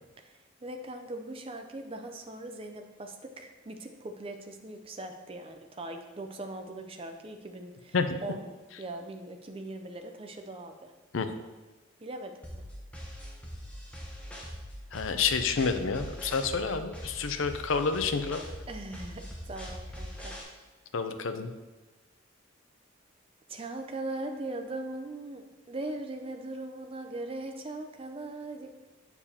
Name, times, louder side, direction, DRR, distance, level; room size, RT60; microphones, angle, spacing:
voice 1, 0.2-8.0 8.2-8.5 8.8-10.9 12.0-12.6 17.4-17.5 18.7-20.3 23.5-28.8, right 2 dB, 25° right, 5 dB, 0.5 m, -40 dB
sound 1, 12.4-20.4, equal, 5° left, 0.9 m, -42 dB
voice 2, 14.9-18.4 20.9-21.5, left 5 dB, 75° left, 9 dB, 0.5 m, -29 dB
6.9 x 6.9 x 2.8 m, 1.2 s
head